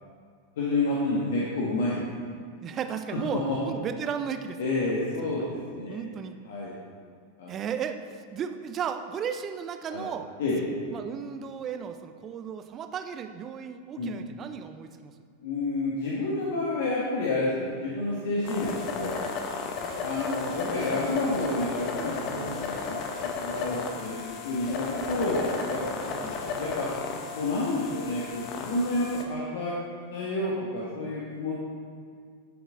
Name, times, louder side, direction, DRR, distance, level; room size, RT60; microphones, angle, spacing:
voice 1, 0.6-2.1 3.1-3.6 4.6-6.0 6.5-6.7 7.4-7.5 9.9-10.1 10.4-10.6 14.0-14.2 15.4-19.2 20.0-26.9 27.4-29.7 30.1-31.6, left 2 dB, 55° left, -5 dB, 1.9 m, -29 dB
voice 2, 2.6-5.3 5.6-6.3 7.5-10.3 10.9-15.1 20.6-21.1 22.2-22.9 26.0-26.8, right 7 dB, 30° right, 9 dB, 0.7 m, -35 dB
sound 1, 18.4-29.2, left 5 dB, 40° left, 1.4 m, -34 dB
15.0 x 8.0 x 3.9 m, 2.2 s
figure-of-eight pair, 90°, 0 cm